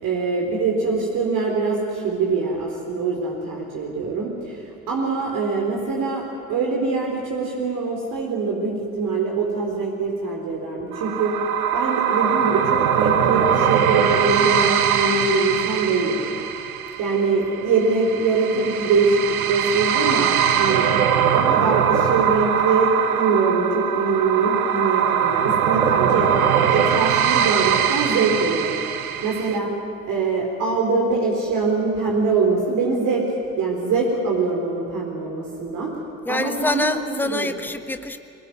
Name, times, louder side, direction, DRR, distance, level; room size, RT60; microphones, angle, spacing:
voice 1, 0.0-11.4 11.7-16.2 17.0-20.3 20.6-20.9 21.2-28.8 29.2-29.7 30.0-33.2 33.6-35.9 36.3-37.5, right 4 dB, 45° right, -1 dB, 4.4 m, -23 dB
sound 1, 10.9-29.6, right 9 dB, 75° right, 1.3 m, -21 dB
voice 2, 36.2-38.2, left 2 dB, 5° left, 8 dB, 1.3 m, -25 dB
23.5 x 20.0 x 9.4 m, 2.6 s
figure-of-eight pair, 65°, 43 cm